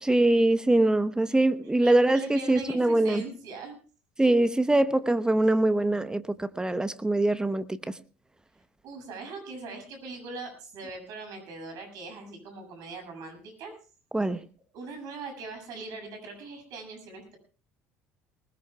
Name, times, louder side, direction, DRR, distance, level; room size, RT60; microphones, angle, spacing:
voice 1, 0.0-3.2 4.2-7.8 14.1-14.4, right 2 dB, 10° right, 1.0 m, -23 dB
voice 2, 1.8-3.8 8.8-13.7 14.3-14.4 14.7-17.4, right 3 dB, 60° right, 7.4 m, -41 dB
20.5 x 19.5 x 2.3 m
hypercardioid pair, 65°, 7 cm